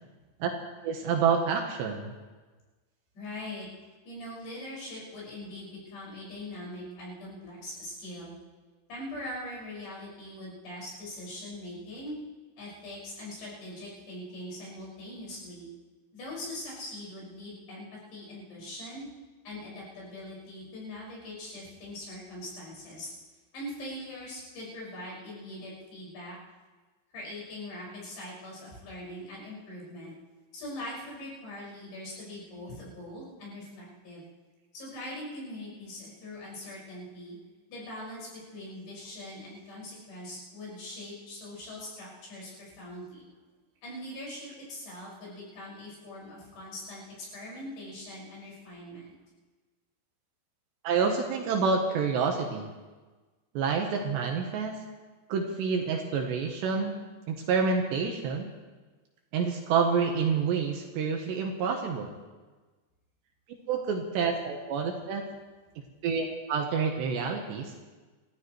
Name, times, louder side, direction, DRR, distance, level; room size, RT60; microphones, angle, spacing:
voice 1, 0.8-2.1 50.8-52.7 53.5-54.8 55.3-56.9 57.3-58.5 59.3-62.1 63.7-65.2 66.0-67.7, right 5 dB, 70° right, 2 dB, 3.0 m, -28 dB
voice 2, 3.1-3.7 4.1-8.4 8.9-12.2 12.6-15.7 16.1-19.1 19.4-23.1 23.5-26.4 27.1-30.1 30.5-34.2 34.7-37.4 37.7-43.2 43.8-49.1, left 1 dB, 55° left, -5 dB, 7.7 m, -42 dB
27.0 x 14.5 x 3.2 m, 1.3 s
omnidirectional pair, 5.6 m